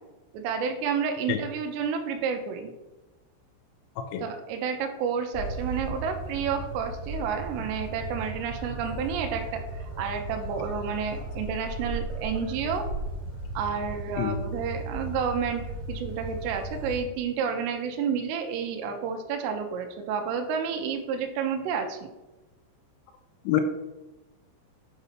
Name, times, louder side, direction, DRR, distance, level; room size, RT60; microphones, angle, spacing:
voice 1, 0.3-2.7 4.2-12.9 13.6-22.0, right 6 dB, 85° right, 4 dB, 2.5 m, -30 dB
voice 2, 1.3-1.4 4.0-4.2 14.2-14.4 23.5-23.6, left 11 dB, 85° left, 6 dB, 3.0 m, -26 dB
sound 1, 5.3-17.0, right 2 dB, 45° right, 2.1 m, -36 dB
7.8 x 3.0 x 5.7 m, 1.1 s
omnidirectional pair, 5.8 m